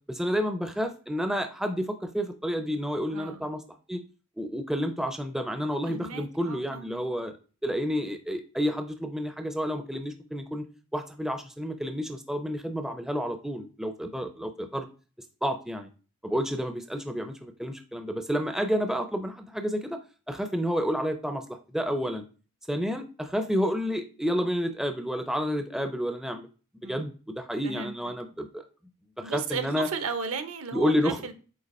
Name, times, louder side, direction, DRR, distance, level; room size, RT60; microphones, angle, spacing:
voice 1, 0.1-3.6 3.9-4.0 4.4-7.4 7.6-10.7 10.9-14.9 15.4-15.9 16.2-20.0 20.3-21.4 21.7-22.3 22.7-26.5 26.8-28.6 29.2-29.9 30.7-31.2, equal, ahead, 6 dB, 0.4 m, -30 dB
voice 2, 3.1-3.5 5.8-7.1 26.8-27.1 27.6-27.9 29.2-31.3, right 5 dB, 70° right, 9 dB, 0.8 m, -35 dB
8.1 x 2.9 x 4.1 m, 0.36 s
head